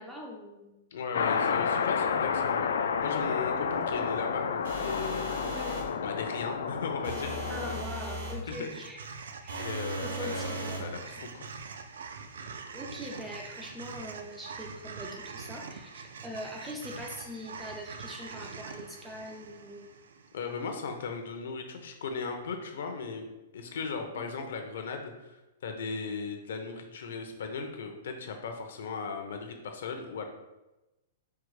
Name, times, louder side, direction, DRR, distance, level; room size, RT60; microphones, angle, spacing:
voice 1, 0.0-0.8 4.0-4.1 5.4-5.9 7.5-9.0 9.4-9.7 10.0-11.0 12.7-19.9 24.1-24.5, equal, 5° right, 1 dB, 0.3 m, -42 dB
voice 2, 0.9-5.4 6.0-7.5 8.5-8.7 9.6-11.5 20.3-23.3 23.5-25.3 25.6-30.2, left 5 dB, 65° left, 4 dB, 0.7 m, -37 dB
sound 1, 1.1-7.8, left 6 dB, 80° left, 0.3 m, -30 dB
sound 2, 4.6-5.9 7.0-8.4 9.5-10.9, right 1 dB, 75° right, 1.4 m, -37 dB
sound 3, 8.5-20.8, right 5 dB, 90° right, 0.4 m, -44 dB
4.6 x 2.1 x 4.7 m, 1.0 s
hypercardioid pair, 180°, 0 cm